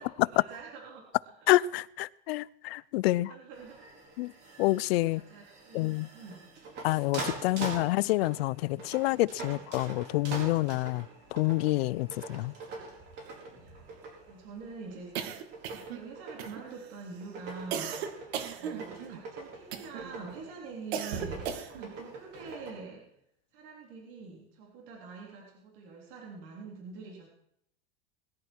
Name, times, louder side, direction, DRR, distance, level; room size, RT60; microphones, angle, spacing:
voice 1, 0.1-1.0 3.3-3.8 5.1-6.5 7.5-7.9 9.5-9.6 13.6-13.8 14.3-15.4 15.7-23.0 23.5-27.3, right 4 dB, 55° right, 3.6 m, -46 dB
voice 2, 1.5-3.3 4.2-4.3 4.6-5.2 5.7-6.1 6.8-12.5, left 18 dB, 80° left, 0.6 m, -28 dB
sound 1, 3.5-22.7, right 3 dB, 35° right, 4.8 m, -44 dB
sound 2, 15.1-16.1 16.4-16.9 17.7-19.2 19.7-20.1 20.9-21.9, right 8 dB, 85° right, 1.9 m, -36 dB
20.5 x 11.5 x 4.6 m
supercardioid pair, 165°, 31 cm